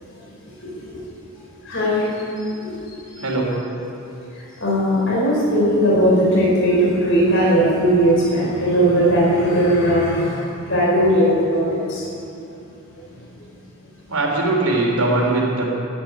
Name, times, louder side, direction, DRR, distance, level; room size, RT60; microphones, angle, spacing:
voice 1, 1.6-2.0 2.4-2.8 3.1-3.2 4.6-12.0, equal, 60° left, -4 dB, 4.5 m, -18 dB
voice 2, 3.2-3.5 14.1-15.6, right 2 dB, 90° right, -1 dB, 3.6 m, -20 dB
13.0 x 10.5 x 9.8 m, 2.7 s
head